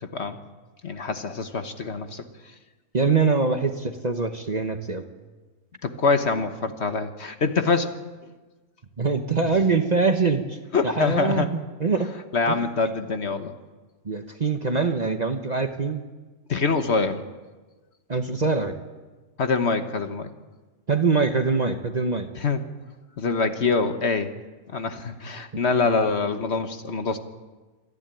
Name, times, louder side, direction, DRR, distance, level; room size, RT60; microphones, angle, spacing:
voice 1, 0.0-0.4 0.8-2.2 5.8-7.9 9.5-9.6 10.7-11.5 12.3-13.5 16.5-17.2 19.4-20.3 22.4-22.6 23.2-24.3 24.7-27.2, left 4 dB, 50° left, 8 dB, 1.4 m, -25 dB
voice 2, 2.9-5.0 9.0-10.6 10.8-12.1 12.5-12.6 14.0-16.0 18.1-18.7 20.9-22.3 25.7-25.8, right 4 dB, 35° right, 6 dB, 1.0 m, -23 dB
27.5 x 11.0 x 9.1 m, 1.3 s
omnidirectional pair, 1.5 m